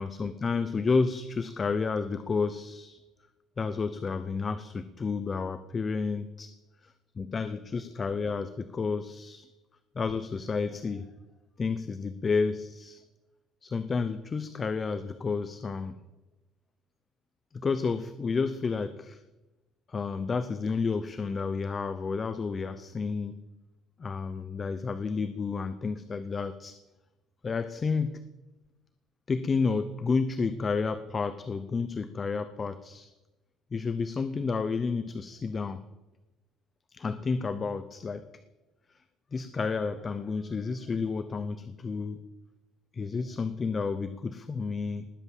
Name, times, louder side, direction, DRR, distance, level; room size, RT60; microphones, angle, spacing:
voice 1, 0.0-3.0 3.6-6.5 6.8-9.5 10.0-11.1 11.6-13.0 13.6-16.0 17.5-19.2 19.9-23.4 24.0-26.8 27.4-28.2 29.3-33.1 33.7-35.8 36.9-38.3 39.3-42.3 42.9-45.1, left 4 dB, 25° left, 11 dB, 0.7 m, -31 dB
19.5 x 8.0 x 7.3 m, 1.1 s
cardioid pair, 150°, 0 cm